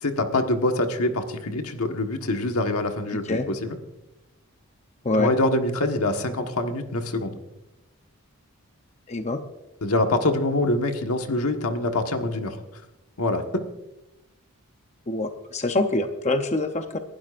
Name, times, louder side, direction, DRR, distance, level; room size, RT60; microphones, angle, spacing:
voice 1, 0.0-3.8 5.1-7.4 9.8-12.6 13.2-13.4, left 2 dB, 80° left, 5 dB, 1.5 m, -25 dB
voice 2, 9.1-9.4 15.1-17.0, left 2 dB, 30° left, 6 dB, 0.7 m, -25 dB
29.0 x 12.0 x 2.6 m, 0.96 s
head